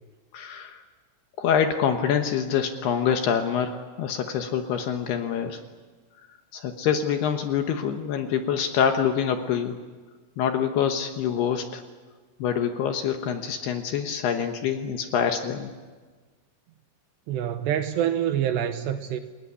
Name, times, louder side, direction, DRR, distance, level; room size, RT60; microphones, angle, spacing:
voice 1, 0.3-0.8 1.4-5.6 6.5-9.8 10.4-11.8 12.4-15.7, left 8 dB, 70° left, 6 dB, 2.7 m, -25 dB
voice 2, 17.3-19.2, right 10 dB, 75° right, 8 dB, 2.8 m, -26 dB
29.0 x 18.5 x 9.9 m, 1.4 s
omnidirectional pair, 5.7 m